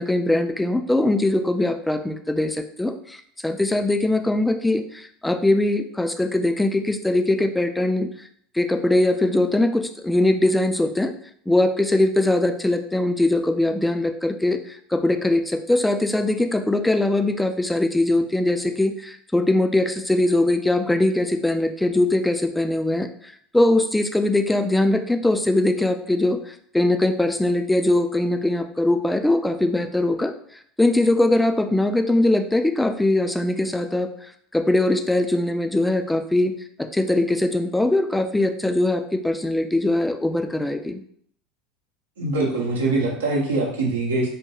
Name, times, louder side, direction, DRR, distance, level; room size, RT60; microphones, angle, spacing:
voice 1, 0.0-8.3 8.5-11.1 11.5-23.1 23.5-30.3 30.8-34.1 34.5-36.5 36.8-41.0, left 1 dB, 5° left, 7 dB, 0.3 m, -21 dB
voice 2, 42.2-44.3, right 2 dB, 80° right, -2 dB, 0.7 m, -23 dB
3.6 x 2.2 x 2.8 m, 0.64 s
figure-of-eight pair, 75°, 0 cm